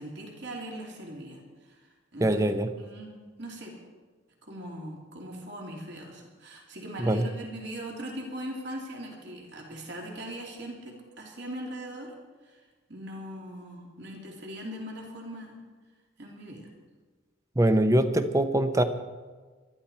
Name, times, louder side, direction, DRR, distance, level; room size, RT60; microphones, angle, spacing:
voice 1, 0.0-1.4 1.7-1.8 2.1-2.4 2.7-3.7 4.4-12.1 12.5-12.6 12.9-15.6 16.2-16.7, right 1 dB, 55° right, -1 dB, 3.0 m, -40 dB
voice 2, 2.2-2.7 7.0-7.3 17.6-18.8, right 1 dB, 15° right, 9 dB, 0.7 m, -23 dB
22.0 x 13.0 x 4.4 m, 1.4 s
head